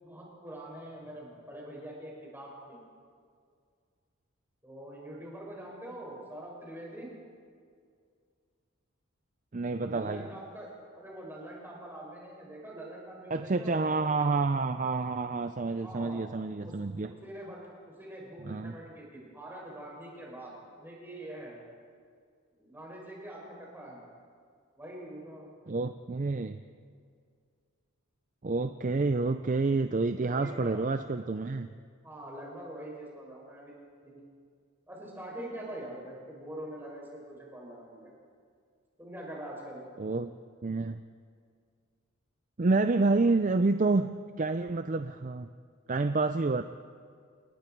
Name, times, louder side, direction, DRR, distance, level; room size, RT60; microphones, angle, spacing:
voice 1, 0.0-2.8 4.6-7.1 9.8-13.9 15.8-16.2 16.6-16.8 17.1-17.6 17.8-21.6 22.6-24.0 24.8-25.5 30.2-30.8 32.0-33.7 34.0-34.2 34.9-38.1 39.0-39.8, right 1 dB, 10° right, -3 dB, 5.9 m, -44 dB
voice 2, 9.5-10.3 13.3-17.1 18.4-18.8 25.7-26.6 28.4-31.7 40.0-40.3 40.6-41.0 42.6-45.5 45.9-46.6, right 3 dB, 35° right, 9 dB, 0.4 m, -28 dB
29.0 x 19.5 x 4.6 m, 2.2 s
head